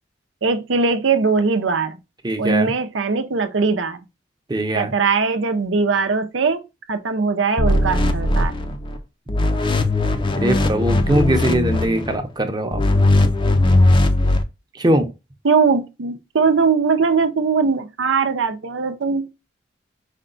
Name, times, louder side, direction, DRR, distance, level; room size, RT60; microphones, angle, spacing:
voice 1, 0.4-2.0 2.4-4.0 4.8-6.6 6.9-8.5 15.4-19.3, right 4 dB, 90° right, 0.6 m, -20 dB
voice 2, 2.2-2.7 4.5-4.9 10.4-12.8 14.8-15.1, right 1 dB, 25° right, 0.7 m, -21 dB
sound 1, 7.6-9.0 9.3-12.2 12.7-14.4, left 2 dB, 25° left, 0.5 m, -18 dB
5.1 x 2.2 x 3.8 m
head